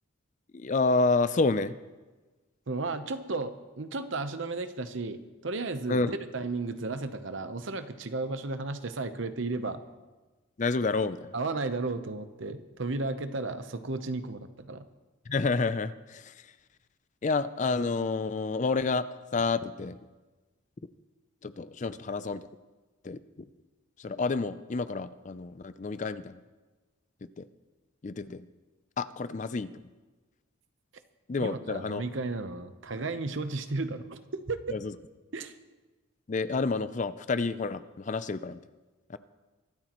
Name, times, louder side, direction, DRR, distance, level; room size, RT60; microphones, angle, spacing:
voice 1, 0.5-1.8 5.9-6.2 10.6-11.3 15.3-16.5 17.2-19.1 19.3-20.0 21.4-22.5 23.0-23.2 24.0-26.4 27.4-27.5 28.0-28.4 29.0-29.8 31.3-32.0 34.7-34.9 36.3-38.6 39.1-39.2, left 3 dB, 35° left, 13 dB, 0.4 m, -29 dB
voice 2, 2.7-9.8 11.3-14.8 31.4-34.6 35.3-35.5, right 3 dB, 65° right, 10 dB, 0.9 m, -34 dB
23.5 x 13.0 x 3.1 m, 1.2 s
head